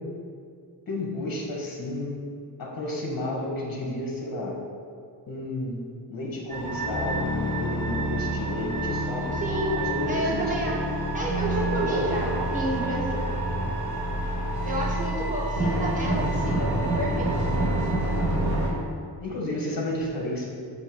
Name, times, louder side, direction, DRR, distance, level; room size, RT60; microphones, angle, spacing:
voice 1, 0.9-2.2 2.6-4.5 5.3-9.4 9.7-10.7 11.7-12.1 19.2-20.5, left 1 dB, 55° left, -2 dB, 1.6 m, -32 dB
sound 1, 6.5-18.7, right 1 dB, 45° right, 1.8 m, -27 dB
voice 2, 9.3-9.8 10.1-10.7 11.1-13.2 14.6-16.7 16.9-17.3, right 1 dB, 20° right, -6 dB, 1.5 m, -30 dB
8.0 x 3.0 x 6.2 m, 2.3 s
wide cardioid pair, 155°, 42 cm